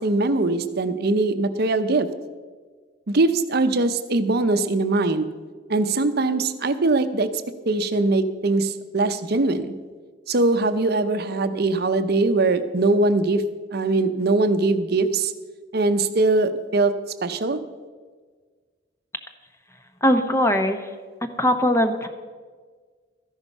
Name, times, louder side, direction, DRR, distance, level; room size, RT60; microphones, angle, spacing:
voice 1, 0.0-2.1 3.1-5.3 5.7-7.3 7.7-9.7 10.3-13.4 13.7-15.3 15.7-16.9 17.2-17.6, right 2 dB, 60° right, 10 dB, 0.8 m, -21 dB
voice 2, 20.0-20.9 21.2-22.1, equal, 15° left, 7 dB, 1.0 m, -20 dB
14.0 x 10.5 x 5.4 m, 1.5 s
head